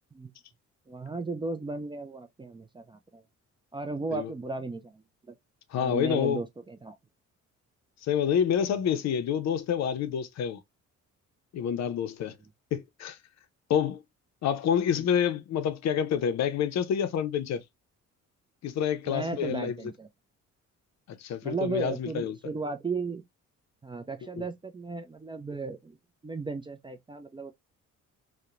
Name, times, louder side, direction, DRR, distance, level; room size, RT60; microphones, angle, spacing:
voice 1, 0.9-3.2 3.7-5.0 5.3-5.4 5.7-7.0 14.9-15.1 19.1-20.1 21.4-23.2 23.8-26.0 26.2-27.5, right 3 dB, 15° right, 0.4 m, -35 dB
voice 2, 5.7-6.4 8.0-10.6 11.5-12.4 12.7-13.2 13.7-14.0 14.4-17.6 18.6-19.7 21.2-22.4 24.4-24.5, left 8 dB, 60° left, 0.5 m, -28 dB
2.8 x 2.1 x 2.4 m
cardioid pair, 90°, 30 cm